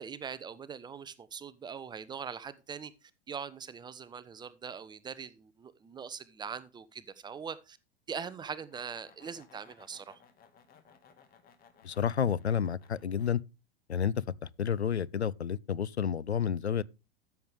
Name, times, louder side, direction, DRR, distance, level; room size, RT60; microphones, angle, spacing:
voice 1, 0.0-7.8 8.1-10.2, right 6 dB, 15° right, 0.7 m, -42 dB
sound 1, 8.4-13.3, left 6 dB, 25° left, 1.9 m, -61 dB
voice 2, 11.8-13.4 13.9-14.1 14.4-16.8, left 8 dB, 85° left, 0.5 m, -30 dB
13.0 x 7.2 x 3.4 m
figure-of-eight pair, 95°, 32 cm